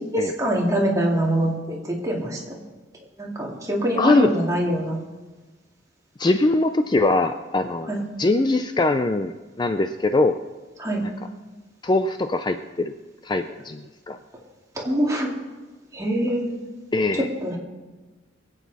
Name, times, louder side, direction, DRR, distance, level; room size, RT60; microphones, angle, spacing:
voice 1, 0.0-2.6 3.2-5.0 7.9-8.0 10.8-11.0 14.8-15.3 15.9-16.5 17.1-17.6, right 1 dB, 15° right, -3 dB, 2.3 m, -24 dB
voice 2, 4.0-4.3 6.2-10.4 11.8-12.9 13.2-14.2 16.9-17.3, left 2 dB, 25° left, 8 dB, 0.4 m, -22 dB
23.5 x 8.4 x 4.1 m, 1.3 s
head